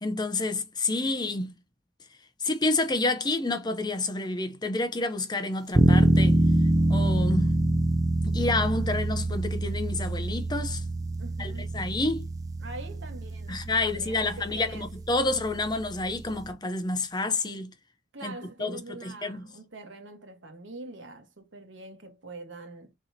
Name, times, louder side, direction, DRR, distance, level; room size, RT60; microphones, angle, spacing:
voice 1, 0.0-1.5 2.4-6.4 6.9-7.5 8.2-10.8 11.4-12.3 13.5-17.7 18.2-18.3 18.6-19.4, left 2 dB, 20° left, 0.7 m, -29 dB
sound 1, 5.7-16.5, right 1 dB, 20° right, 0.7 m, -26 dB
voice 2, 11.2-11.9 12.6-14.9 18.1-22.9, right 2 dB, 80° right, 1.5 m, -44 dB
4.7 x 4.0 x 2.8 m
head